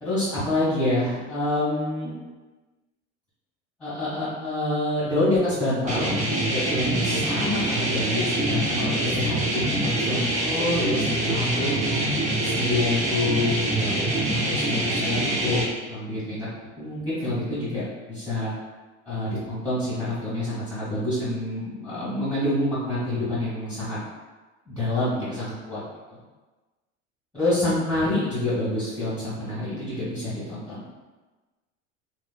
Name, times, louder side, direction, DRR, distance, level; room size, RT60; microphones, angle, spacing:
voice 1, 0.0-2.1 3.8-12.0 12.4-16.5 16.8-18.5 19.0-24.0 24.7-25.8 26.1-26.2 27.3-30.8, left 1 dB, 5° left, -12 dB, 1.4 m, -27 dB
sound 1, 5.9-15.6, right 1 dB, 20° right, 0.5 m, -25 dB
2.9 x 2.3 x 2.3 m, 1.2 s
hypercardioid pair, 80°, 38 cm